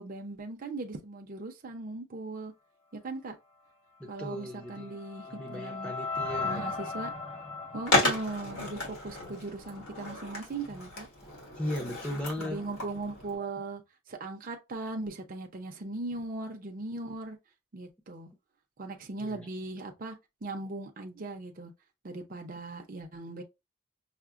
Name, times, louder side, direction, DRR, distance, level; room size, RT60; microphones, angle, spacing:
voice 1, 0.0-2.5 2.9-3.4 4.1-5.9 6.4-7.1 7.7-11.1 12.4-13.8 14.1-17.4 17.7-18.3 18.8-20.2 20.4-21.7 22.0-23.4, right 2 dB, 40° right, 0.6 m, -39 dB
voice 2, 4.0-5.0 5.2-6.7 11.6-12.6 19.2-19.5, equal, 5° left, 0.6 m, -37 dB
sound 1, 4.3-9.5, left 4 dB, 30° left, 1.0 m, -38 dB
Skateboard, 7.9-13.4, left 2 dB, 90° left, 1.5 m, -33 dB
5.7 x 2.0 x 2.5 m
head